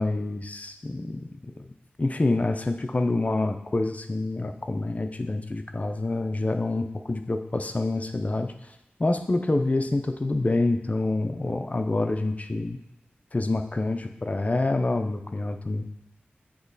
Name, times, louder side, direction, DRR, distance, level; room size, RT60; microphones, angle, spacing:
voice 1, 0.0-1.5 2.0-8.5 9.0-12.8 13.3-15.9, left 2 dB, 40° left, 6 dB, 0.6 m, -27 dB
8.6 x 3.0 x 4.0 m, 0.87 s
wide cardioid pair, 55°, 4 cm